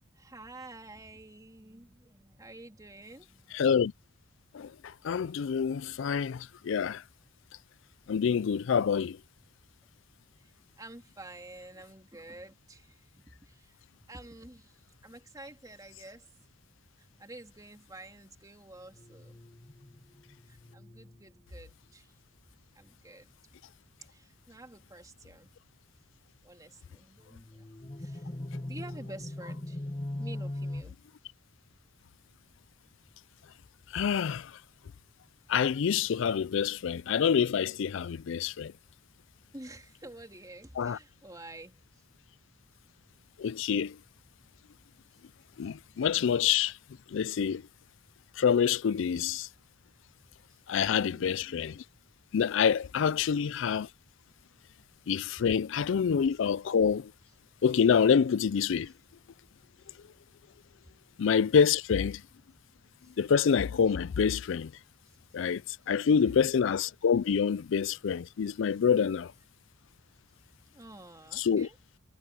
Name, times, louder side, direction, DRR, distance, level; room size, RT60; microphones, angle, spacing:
voice 1, 0.0-3.6 6.9-7.1 7.5-7.7 10.4-13.8 14.1-16.5 17.0-19.4 20.5-22.2 22.7-23.6 24.0-25.5 26.4-31.0 39.5-42.0 45.1-45.2 45.6-45.7 50.5-51.4 52.9-53.1 55.4-55.5 59.9-60.0 60.8-60.9 63.0-63.2 65.0-65.2 65.8-66.4 70.7-71.8, right 2 dB, 20° right, 3.1 m, -50 dB
voice 2, 3.5-3.9 4.5-4.7 5.0-7.0 8.1-9.2 33.9-34.5 35.5-38.7 40.8-41.0 43.4-44.0 45.6-46.7 47.1-47.6 48.4-49.5 50.7-51.8 52.3-53.9 55.1-57.1 57.6-58.9 61.2-62.2 63.2-64.7 65.3-65.6 65.9-69.3 71.4-71.7, left 7 dB, 65° left, 0.4 m, -26 dB
sound 1, 18.9-21.2 27.3-30.8, left 1 dB, 25° left, 0.9 m, -40 dB
head